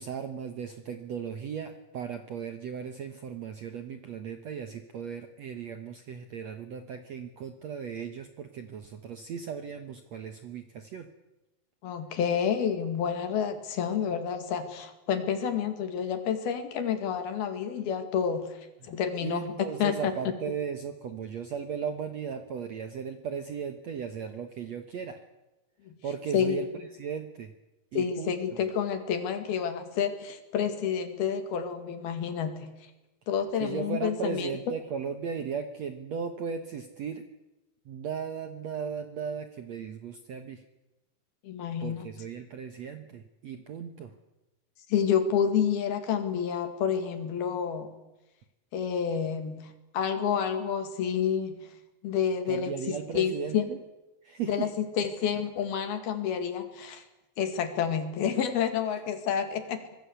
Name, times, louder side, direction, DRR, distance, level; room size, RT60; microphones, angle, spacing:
voice 1, 0.0-11.1 18.8-18.9 19.2-25.2 26.0-26.7 27.0-27.5 27.9-28.4 33.6-37.2 37.8-40.6 41.8-44.1 52.5-53.8 54.2-54.7, right 7 dB, 65° right, 8 dB, 1.8 m, -36 dB
voice 2, 11.8-18.5 18.9-20.1 25.9-26.0 26.3-26.9 28.0-32.7 33.3-34.5 41.4-42.1 44.9-47.9 48.7-49.7 49.9-51.6 52.0-53.6 54.4-54.7 55.0-57.0 57.4-59.8, left 7 dB, 70° left, 8 dB, 4.0 m, -29 dB
25.5 x 20.0 x 8.2 m, 1.0 s
omnidirectional pair, 4.7 m